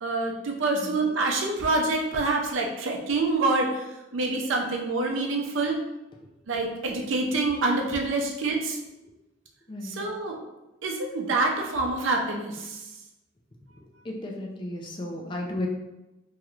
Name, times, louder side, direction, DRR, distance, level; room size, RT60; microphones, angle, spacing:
voice 1, 0.0-5.8 6.5-8.8 9.8-10.4 10.8-12.8, right 3 dB, 70° right, 1 dB, 0.5 m, -26 dB
voice 2, 14.0-15.7, left 1 dB, 25° left, 0 dB, 0.4 m, -33 dB
3.1 x 3.0 x 2.4 m, 0.99 s
head